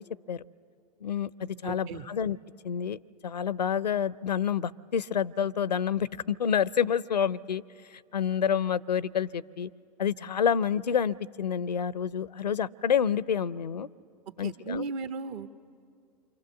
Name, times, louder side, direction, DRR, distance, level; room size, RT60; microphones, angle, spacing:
voice 1, 1.0-2.4 2.6-7.6 8.1-9.7 10.0-13.9 14.4-14.9, left 8 dB, 85° left, 21 dB, 0.5 m, -28 dB
voice 2, 1.6-2.0 14.4-15.5, right 4 dB, 55° right, 9 dB, 1.3 m, -35 dB
28.0 x 25.5 x 7.1 m, 2.4 s
figure-of-eight pair, 95°, 21 cm